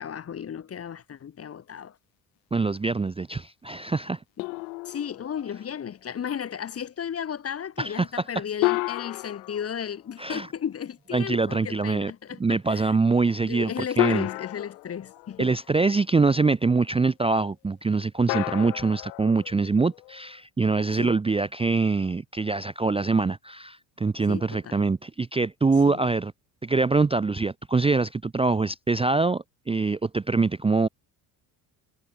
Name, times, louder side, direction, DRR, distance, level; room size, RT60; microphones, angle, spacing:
voice 1, 0.0-2.0 4.9-13.0 13.5-15.5 21.0-21.2 24.3-24.9 25.9-26.1, left 8 dB, 30° left, 0.8 m, -34 dB
voice 2, 2.5-4.2 7.8-8.2 10.2-10.5 11.1-12.1 12.4-14.3 15.4-26.3 26.6-30.9, right 3 dB, 10° right, 0.5 m, -24 dB
sound 1, 4.4-5.8 8.6-10.6 12.3-12.4 14.0-15.8 18.3-20.3, left 26 dB, 85° left, 1.0 m, -31 dB
hypercardioid pair, 70°, 50 cm